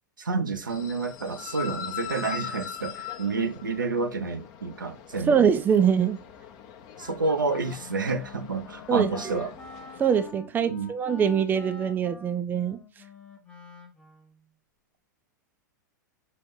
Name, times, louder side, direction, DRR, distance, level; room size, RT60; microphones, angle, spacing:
voice 1, 0.2-5.5 7.0-9.5 10.7-10.9, right 4 dB, 85° right, 0.7 m, -29 dB
sound 1, 0.7-10.3, left 10 dB, 40° left, 0.7 m, -41 dB
voice 2, 5.3-6.2 8.9-9.1 10.0-12.8, right 7 dB, 20° right, 0.5 m, -23 dB
Wind instrument woodwind instrument, 7.1-14.4, left 2 dB, 10° left, 0.8 m, -47 dB
5.8 x 2.5 x 3.6 m
hypercardioid pair, 100°, 10 cm